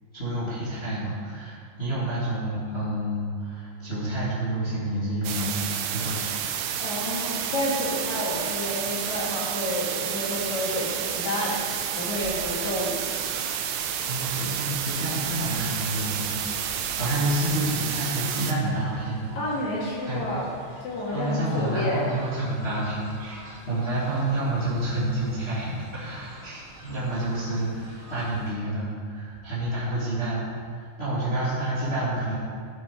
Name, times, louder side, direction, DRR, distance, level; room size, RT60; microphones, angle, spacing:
voice 1, 0.1-6.7 14.1-19.6 20.1-20.3 21.1-32.3, right 1 dB, 25° left, -9 dB, 1.3 m, -29 dB
sound 1, 5.2-18.5, right 9 dB, 80° right, 2.8 m, -30 dB
voice 2, 6.8-11.6 12.0-13.3 19.3-20.5 20.8-22.1, left 1 dB, 50° left, -5 dB, 2.7 m, -30 dB
Fowl, 12.0-28.5, right 1 dB, 35° right, 3.7 m, -47 dB
14.0 x 6.7 x 5.2 m, 2.2 s
omnidirectional pair, 5.6 m